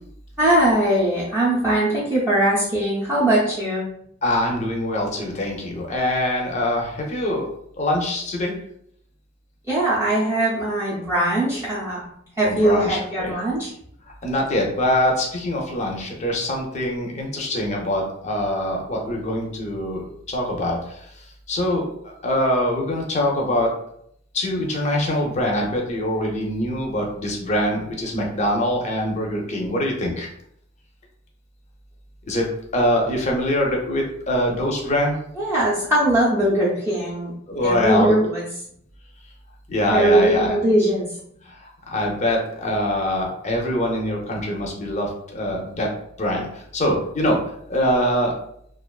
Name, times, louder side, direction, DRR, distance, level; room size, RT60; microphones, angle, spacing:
voice 1, 0.4-3.8 9.7-12.0 12.4-13.7 35.4-37.3 37.6-38.4 39.9-41.0, right 1 dB, 10° right, -9 dB, 0.5 m, -20 dB
voice 2, 4.2-7.4 7.8-8.5 12.4-13.3 14.2-20.0 20.3-20.8 21.5-21.8 22.2-23.7 24.3-30.3 32.3-32.4 32.7-35.2 37.5-38.2 39.7-40.5 41.9-45.1 45.3-45.9 46.2-46.5 46.7-47.4 47.7-48.3, left 1 dB, 35° left, 0 dB, 0.5 m, -23 dB
2.4 x 2.2 x 2.3 m, 0.69 s
head